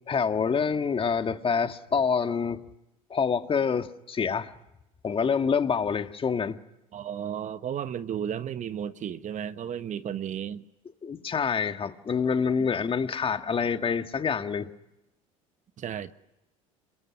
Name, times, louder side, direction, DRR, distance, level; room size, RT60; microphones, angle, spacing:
voice 1, 0.1-2.6 3.1-4.5 5.0-6.6 11.0-14.7, left 6 dB, 30° left, 1.8 m, -26 dB
voice 2, 6.9-10.6 15.8-16.1, right 9 dB, 45° right, 1.3 m, -33 dB
27.0 x 22.0 x 9.9 m
hypercardioid pair, 70°, 18 cm